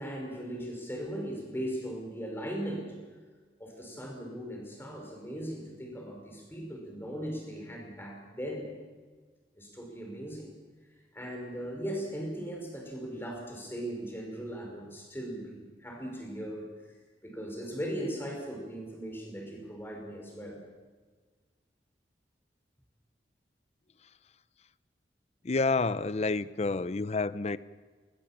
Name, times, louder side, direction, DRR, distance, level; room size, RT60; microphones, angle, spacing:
voice 1, 0.0-2.9 3.6-8.7 9.6-10.5 11.1-17.0 17.2-20.6, equal, 15° left, 1 dB, 5.4 m, -38 dB
voice 2, 25.4-27.6, left 3 dB, 40° left, 16 dB, 0.6 m, -29 dB
20.5 x 20.0 x 7.5 m, 1.4 s
head